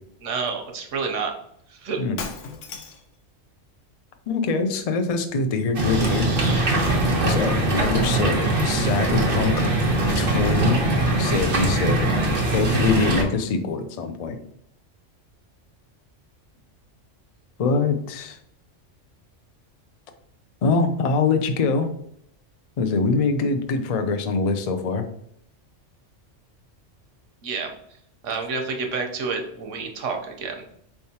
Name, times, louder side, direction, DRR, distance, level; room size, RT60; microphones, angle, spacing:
voice 1, 0.2-1.3 1.7-2.0 27.4-27.7 28.2-30.6, right 5 dB, 85° right, 3 dB, 1.1 m, -29 dB
Shatter, 2.2-3.2, left 5 dB, 85° left, 1.0 m, -35 dB
voice 2, 4.3-6.3 7.3-12.1 12.5-14.4 17.6-18.4 20.6-21.9 22.8-25.1, left 4 dB, 60° left, 6 dB, 0.4 m, -24 dB
sound 1, 5.7-13.2, right 2 dB, 50° right, 1.1 m, -22 dB
4.4 x 3.5 x 2.8 m, 0.71 s
omnidirectional pair, 1.3 m